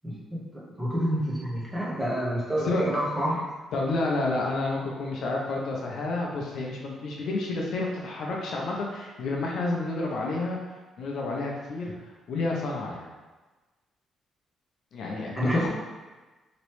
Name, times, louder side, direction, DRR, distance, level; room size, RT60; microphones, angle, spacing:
voice 1, 0.0-3.4 15.4-15.7, equal, 5° right, -7 dB, 0.8 m, -28 dB
voice 2, 3.7-10.6 11.0-13.1 14.9-15.7, left 2 dB, 55° left, -2 dB, 0.5 m, -30 dB
3.0 x 2.9 x 3.0 m, 1.2 s
cardioid pair, 165°, 0 cm